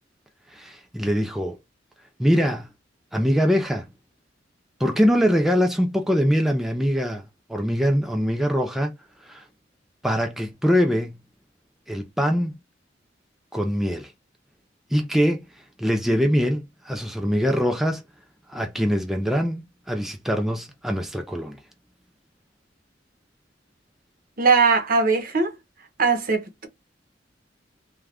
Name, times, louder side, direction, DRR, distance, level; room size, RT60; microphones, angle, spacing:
voice 1, 0.5-1.6 2.2-2.7 3.1-3.9 4.8-8.9 9.2-9.5 10.0-11.2 11.9-12.5 13.5-14.1 14.9-18.0 18.5-21.6, equal, ahead, 0.3 m, -23 dB
voice 2, 24.4-25.6 26.0-26.7, right 4 dB, 50° right, 0.7 m, -20 dB
2.4 x 2.2 x 3.3 m
head